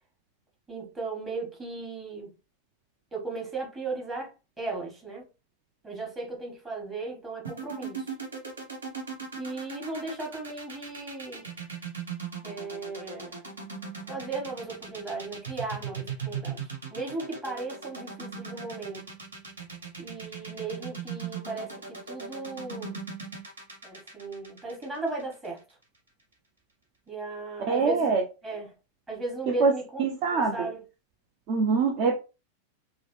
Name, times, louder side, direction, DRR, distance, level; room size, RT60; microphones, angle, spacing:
voice 1, 0.7-2.3 3.1-5.3 5.8-8.1 9.4-11.4 12.4-13.4 14.1-19.1 20.0-23.0 23.8-25.6 27.1-28.1 28.4-28.7 29.1-30.0 30.3-30.8, right 3 dB, 15° right, 1.5 m, -36 dB
sound 1, 7.4-25.6, right 6 dB, 70° right, 1.1 m, -38 dB
voice 2, 27.7-28.2 29.6-29.7 30.0-30.7 31.5-32.2, right 4 dB, 40° right, 0.5 m, -24 dB
3.8 x 2.1 x 3.2 m
figure-of-eight pair, 90°, 0 cm